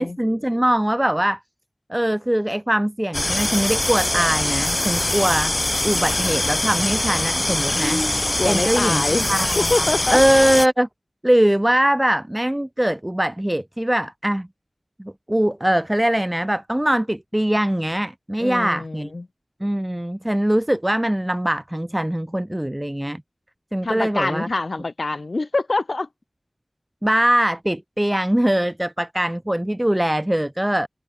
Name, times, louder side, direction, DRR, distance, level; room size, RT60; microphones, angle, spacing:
voice 1, 0.0-1.4 1.9-5.6 5.8-8.0 8.4-9.0 9.3-10.9 11.2-14.5 15.0-19.1 19.6-23.2 23.7-24.5 27.0-30.9, right 1 dB, 15° right, 1.4 m, -21 dB
sound 1, 3.1-10.7, left 1 dB, 40° left, 0.5 m, -23 dB
voice 2, 8.4-10.2 18.4-19.3 23.8-26.1, left 3 dB, 70° left, 0.8 m, -25 dB
wide cardioid pair, 45°, 0 cm